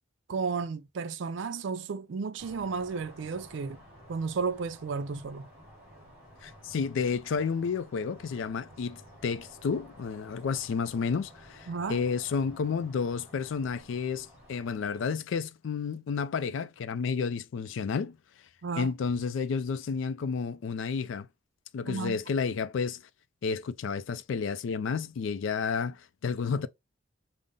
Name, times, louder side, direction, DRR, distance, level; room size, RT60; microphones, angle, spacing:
voice 1, 0.3-3.8 4.1-5.5 11.7-12.0 18.6-18.9 21.8-22.2, right 5 dB, 65° right, 0.4 m, -33 dB
sound 1, 2.4-15.1, equal, 5° right, 2.5 m, -53 dB
voice 2, 6.4-18.2 18.8-21.3 21.7-23.0 23.4-26.7, left 5 dB, 70° left, 0.3 m, -31 dB
5.3 x 2.0 x 3.6 m
head